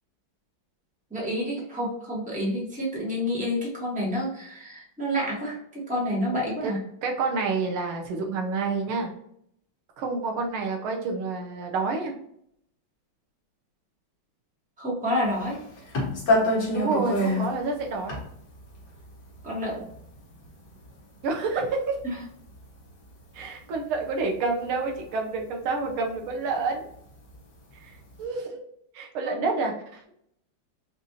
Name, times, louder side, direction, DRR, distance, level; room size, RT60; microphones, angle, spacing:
voice 1, 1.1-6.8 14.8-15.6 19.4-19.8 22.0-22.1 29.2-29.3, equal, 5° right, -5 dB, 1.1 m, -29 dB
voice 2, 7.0-9.1 10.0-12.1 16.7-18.2 21.2-22.0 23.3-26.8 27.7-27.9 28.2-28.6 28.9-30.1, right 4 dB, 85° right, 2 dB, 1.7 m, -28 dB
sound 1, 15.3-23.4 23.7-27.4 27.8-28.2, left 1 dB, 55° left, 1.9 m, -29 dB
5.3 x 2.6 x 2.8 m, 0.71 s
omnidirectional pair, 2.3 m